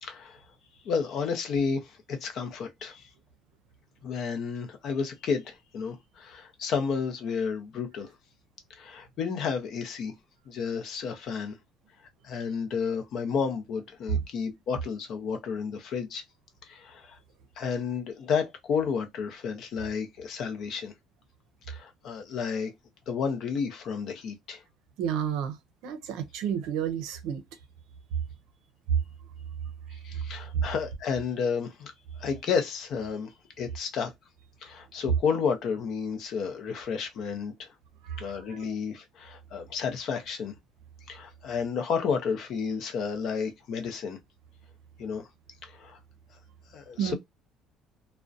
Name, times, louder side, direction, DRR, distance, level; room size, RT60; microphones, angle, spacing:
voice 1, 0.0-0.4 0.8-3.0 4.0-8.1 8.7-10.1 10.5-11.6 12.2-16.2 16.7-17.2 17.6-20.9 21.7-22.7 23.1-24.6 29.9-31.9 32.2-33.3 33.6-34.1 34.6-37.7 38.2-40.5 41.1-44.2 45.0-45.3 45.6-46.0 46.7-47.1, left 6 dB, 50° left, 0.6 m, -31 dB
voice 2, 25.0-25.6 25.8-27.4 28.9-29.0 30.5-30.6 38.0-38.6 47.0-47.1, right 8 dB, 85° right, 0.5 m, -30 dB
2.4 x 2.1 x 2.5 m
cardioid pair, 160°, 0 cm